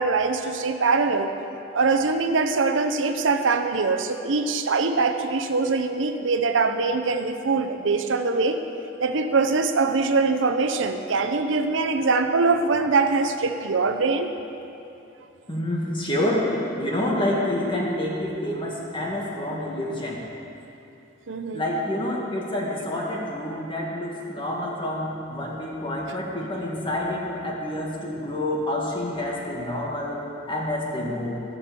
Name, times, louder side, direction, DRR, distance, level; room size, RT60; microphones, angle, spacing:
voice 1, 0.0-1.3 1.7-8.6 9.0-14.3 21.3-21.6, right 4 dB, 80° right, 7 dB, 0.7 m, -23 dB
voice 2, 15.5-16.5 16.8-20.2 21.5-31.4, left 1 dB, 25° left, -3 dB, 1.8 m, -28 dB
14.0 x 6.2 x 6.8 m, 2.8 s
head